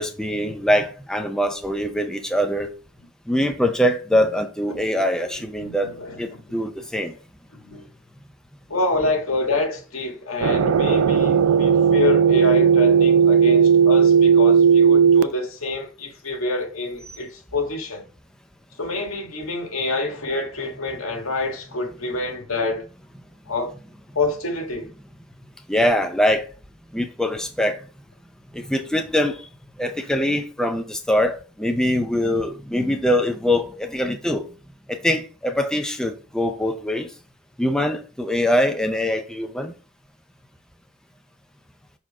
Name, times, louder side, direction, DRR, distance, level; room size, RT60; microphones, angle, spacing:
voice 1, 0.0-2.7 3.3-5.9 6.2-7.1 25.7-26.5 26.9-27.9 28.5-29.5 29.8-34.5 34.9-37.1 37.6-39.7, equal, 5° left, 0.5 m, -23 dB
voice 2, 4.7-5.0 5.6-6.6 7.6-7.8 8.7-18.0 18.8-22.9 23.5-23.7 24.2-24.9, left 2 dB, 85° left, 1.8 m, -27 dB
sound 1, 10.4-15.2, right 7 dB, 85° right, 0.4 m, -15 dB
6.2 x 4.4 x 3.5 m
head